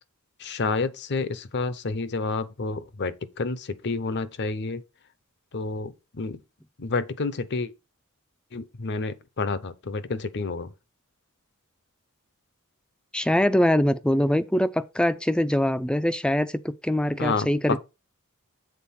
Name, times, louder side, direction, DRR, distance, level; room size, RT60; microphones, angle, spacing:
voice 1, 0.4-4.8 5.5-6.4 6.8-7.7 8.5-10.7 17.2-17.8, left 3 dB, 55° left, 0.7 m, -29 dB
voice 2, 13.1-17.8, left 1 dB, 5° left, 0.4 m, -23 dB
7.5 x 3.9 x 5.7 m
head